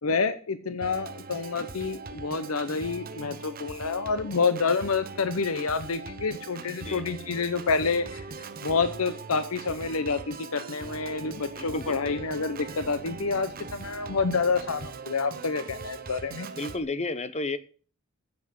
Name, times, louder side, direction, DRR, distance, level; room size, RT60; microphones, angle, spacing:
voice 1, 0.0-8.3 8.6-16.5, left 4 dB, 85° left, 0.8 m, -28 dB
Organ, 0.8-16.8, right 4 dB, 45° right, 1.0 m, -41 dB
voice 2, 11.5-12.2 16.6-17.6, left 3 dB, 30° left, 0.9 m, -32 dB
9.7 x 7.4 x 7.7 m
head